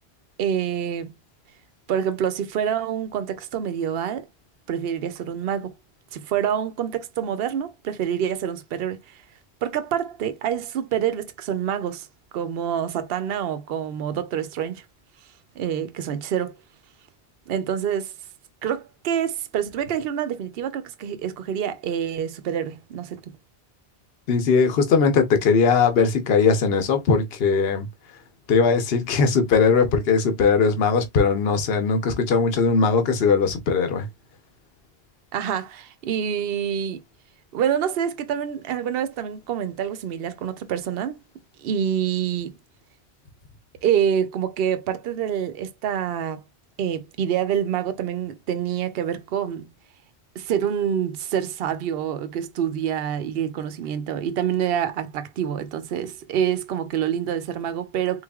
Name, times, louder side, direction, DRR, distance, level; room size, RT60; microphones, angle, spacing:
voice 1, 0.4-1.1 1.9-4.3 4.7-5.7 6.1-9.2 9.6-12.1 12.3-14.8 15.6-16.6 17.5-18.1 18.6-23.3 35.3-37.0 37.5-41.2 41.6-42.6 43.8-46.4 46.8-49.7 50.3-58.2, right 9 dB, 65° right, 0.8 m, -26 dB
voice 2, 24.3-27.9 28.5-34.1, left 5 dB, 65° left, 1.0 m, -19 dB
4.1 x 3.1 x 2.3 m
omnidirectional pair, 1.1 m